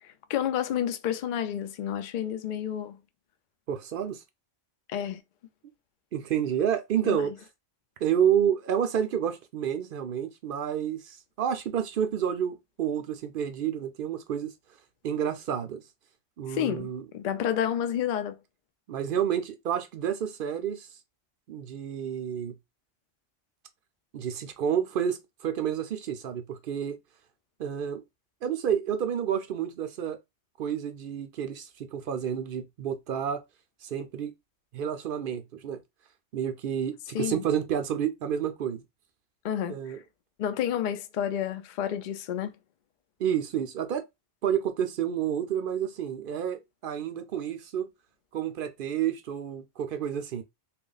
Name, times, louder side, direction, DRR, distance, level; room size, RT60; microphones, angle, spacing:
voice 1, 0.0-3.0 4.9-5.2 7.0-7.3 16.5-18.4 37.1-37.4 39.4-40.0 40.4-42.5, left 10 dB, 60° left, 0.5 m, -30 dB
voice 2, 3.7-4.2 6.1-7.3 8.0-14.5 15.0-15.8 16.4-17.0 18.9-20.9 21.5-22.6 24.1-27.0 27.6-28.0 28.4-30.2 30.6-33.4 33.8-34.3 34.7-35.8 36.3-38.8 39.7-40.0 43.2-44.0 44.4-47.9 48.3-50.4, right 9 dB, 60° right, 0.7 m, -29 dB
3.0 x 2.4 x 3.9 m
omnidirectional pair, 1.2 m